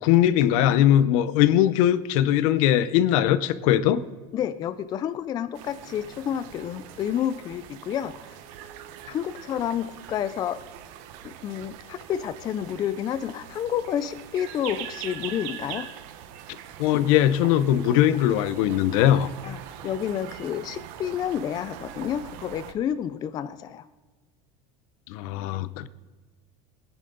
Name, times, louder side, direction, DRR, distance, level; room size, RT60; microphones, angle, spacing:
voice 1, 0.0-4.0 16.8-19.3 25.1-25.9, left 11 dB, 75° left, 0.8 m, -20 dB
voice 2, 4.3-8.4 9.1-10.6 11.2-15.9 19.4-19.6 19.8-23.8, left 9 dB, 25° left, 0.4 m, -30 dB
sound 1, 5.5-22.7, right 10 dB, 60° right, 1.1 m, -42 dB
20.0 x 10.5 x 3.9 m
cardioid pair, 175°, 18 cm